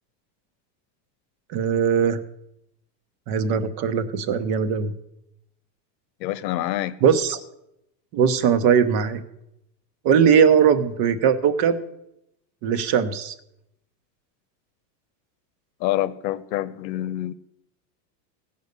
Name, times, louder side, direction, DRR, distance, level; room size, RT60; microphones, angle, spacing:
voice 1, 1.5-2.2 3.3-4.9 7.0-7.4 8.1-9.2 10.0-11.8 12.6-13.3, right 7 dB, 45° right, 0.9 m, -20 dB
voice 2, 6.2-7.0 15.8-17.3, left 14 dB, 90° left, 0.8 m, -26 dB
16.0 x 5.4 x 6.6 m
supercardioid pair, 150°, 50 cm